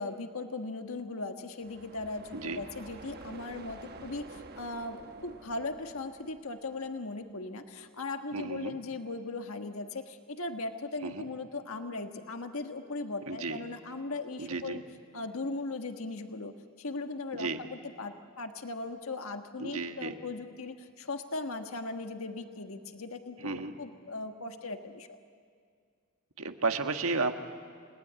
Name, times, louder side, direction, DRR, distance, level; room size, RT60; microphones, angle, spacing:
voice 1, 0.0-14.8 15.1-25.2, left 3 dB, 70° left, 6 dB, 1.4 m, -38 dB
sound 1, 1.6-7.4, right 3 dB, 45° right, 1.1 m, -49 dB
voice 2, 8.3-8.8 11.0-11.3 13.3-13.6 14.4-14.8 17.3-17.6 19.6-20.2 23.4-23.8 26.4-27.3, right 3 dB, 70° right, 6 dB, 1.5 m, -33 dB
29.5 x 19.0 x 10.0 m, 2.2 s
head